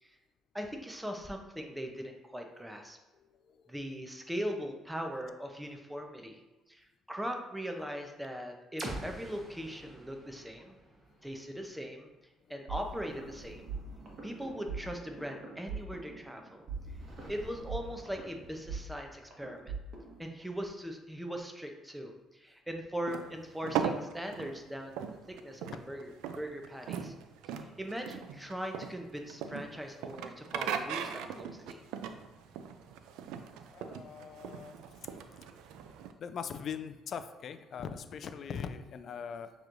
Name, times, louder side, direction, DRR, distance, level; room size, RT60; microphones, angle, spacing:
voice 1, 0.5-3.0 3.7-6.4 6.7-10.8 11.2-12.1 12.5-13.7 14.2-16.7 17.3-19.7 20.2-27.1 27.5-31.8, equal, 5° right, 3 dB, 0.7 m, -40 dB
sound 1, 8.8-12.6, right 1 dB, 25° right, 1.0 m, -45 dB
sound 2, 12.7-20.2, right 4 dB, 50° right, 1.2 m, -43 dB
sound 3, 23.1-36.1, right 7 dB, 90° right, 0.3 m, -39 dB
voice 2, 33.7-35.4 36.2-39.5, left 7 dB, 55° left, 10 dB, 0.3 m, -41 dB
6.5 x 3.0 x 2.6 m, 1.1 s
cardioid pair, 90°, 0 cm